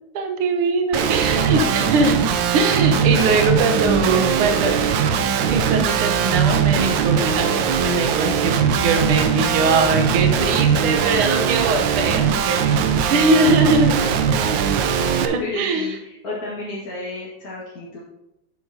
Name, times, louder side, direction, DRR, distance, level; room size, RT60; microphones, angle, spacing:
voice 1, 0.1-2.2 2.5-4.8 5.5-12.7 13.1-13.9 15.2-15.9, right 3 dB, 85° right, 5 dB, 1.9 m, -21 dB
voice 2, 0.9-2.0 4.1-5.3 9.8-9.9 10.5-10.8 15.4-18.0, left 2 dB, 45° left, -7 dB, 2.1 m, -33 dB
Guitar, 0.9-15.3, right 7 dB, 70° right, 1.2 m, -20 dB
9.7 x 8.2 x 2.8 m, 0.89 s
omnidirectional pair, 2.3 m